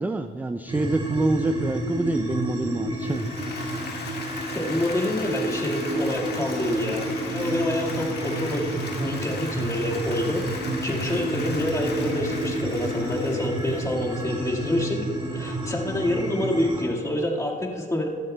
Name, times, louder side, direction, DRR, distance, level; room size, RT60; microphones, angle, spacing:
voice 1, 0.0-3.3, right 2 dB, 10° right, 8 dB, 0.3 m, -26 dB
sound 1, 0.7-16.8, right 1 dB, 25° right, 2.7 m, -30 dB
Applause, 2.9-14.7, left 4 dB, 55° left, 1.6 m, -38 dB
voice 2, 4.5-15.1 15.3-18.1, left 1 dB, 15° left, -2 dB, 1.7 m, -27 dB
15.5 x 12.0 x 2.2 m, 2.3 s
cardioid pair, 90°, 20 cm